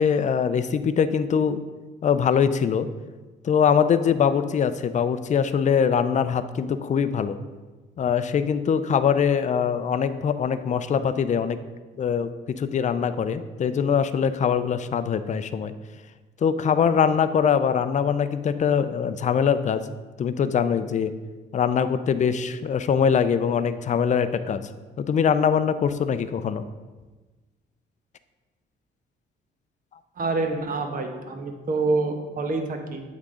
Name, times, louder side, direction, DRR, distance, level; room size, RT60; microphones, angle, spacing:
voice 1, 0.0-1.6 2.0-2.9 3.4-7.4 8.0-11.6 12.0-15.7 16.4-19.8 20.2-21.1 21.5-24.7 25.0-26.6, left 7 dB, 40° left, 12 dB, 0.4 m, -23 dB
voice 2, 30.2-33.0, right 3 dB, 45° right, 4 dB, 0.9 m, -27 dB
8.3 x 3.6 x 3.7 m, 1.3 s
cardioid pair, 90°, 20 cm